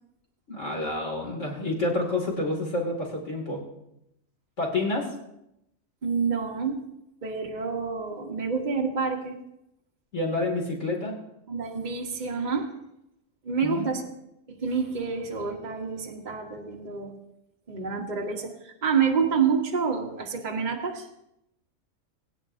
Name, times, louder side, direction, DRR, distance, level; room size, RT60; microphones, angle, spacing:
voice 1, 0.5-3.6 4.6-5.1 10.1-11.2 13.6-14.0, left 2 dB, 65° left, -1 dB, 2.8 m, -28 dB
voice 2, 6.0-6.8 7.2-9.4 11.5-12.7 13.4-14.1 14.5-17.2 17.7-21.1, right 5 dB, 40° right, 0 dB, 1.3 m, -28 dB
20.5 x 9.5 x 2.6 m, 0.81 s
omnidirectional pair, 1.3 m